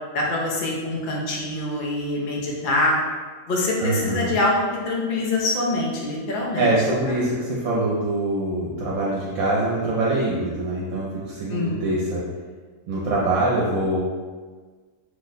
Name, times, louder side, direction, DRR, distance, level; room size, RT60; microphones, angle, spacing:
voice 1, 0.1-3.0 3.5-6.7 7.1-7.2 11.5-11.8, left 2 dB, 55° left, -3 dB, 0.6 m, -24 dB
voice 2, 3.8-4.3 6.6-12.2 12.9-14.0, right 2 dB, 80° right, -6 dB, 1.0 m, -24 dB
3.0 x 2.1 x 3.9 m, 1.5 s
omnidirectional pair, 1.4 m